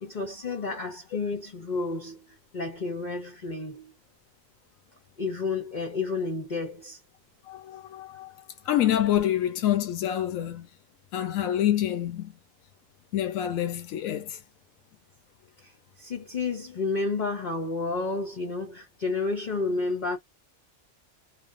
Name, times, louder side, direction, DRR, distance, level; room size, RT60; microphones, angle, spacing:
voice 1, 0.0-2.2 2.5-3.9 5.2-7.0 15.6-15.7 16.0-20.2, left 3 dB, 45° left, 0.6 m, -31 dB
voice 2, 7.4-10.7 11.1-12.3 13.1-14.4, left 11 dB, 85° left, 1.1 m, -27 dB
3.2 x 2.1 x 2.5 m
omnidirectional pair, 1.4 m